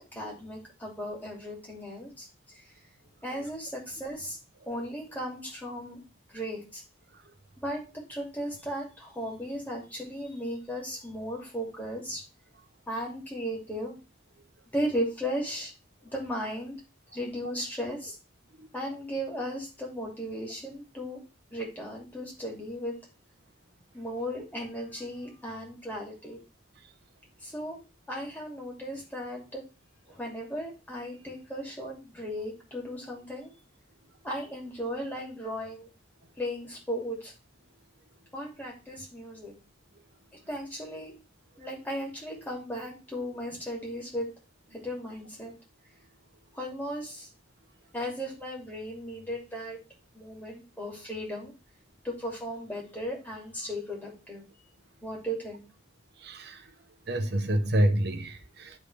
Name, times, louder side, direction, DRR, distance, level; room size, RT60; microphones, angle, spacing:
voice 1, 0.1-2.3 3.2-4.4 4.7-6.0 6.3-6.8 7.6-7.8 8.1-12.2 12.9-14.0 14.7-15.7 16.1-16.8 17.1-18.2 18.7-21.2 21.5-22.9 23.9-26.4 27.4-27.8 28.1-29.6 30.1-33.5 34.2-35.9 36.4-37.3 38.3-39.5 40.5-41.1 41.6-44.3 44.7-45.6 46.5-47.3 47.9-49.8 50.1-51.5 52.0-54.4 55.0-55.7, equal, 10° left, 2.6 m, -36 dB
voice 2, 56.2-56.6 57.1-58.8, right 1 dB, 55° right, 0.9 m, -27 dB
11.0 x 3.8 x 3.3 m
head